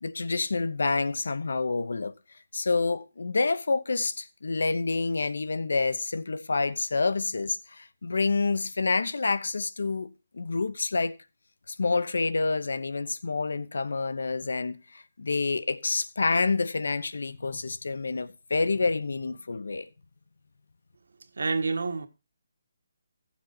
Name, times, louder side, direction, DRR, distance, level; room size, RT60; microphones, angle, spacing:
voice 1, 0.0-2.1 2.5-11.1 11.7-19.9, left 3 dB, 80° left, 0.8 m, -28 dB
voice 2, 21.3-22.1, right 4 dB, 80° right, 1.5 m, -28 dB
15.5 x 7.2 x 4.0 m
hypercardioid pair, 170°, 0 cm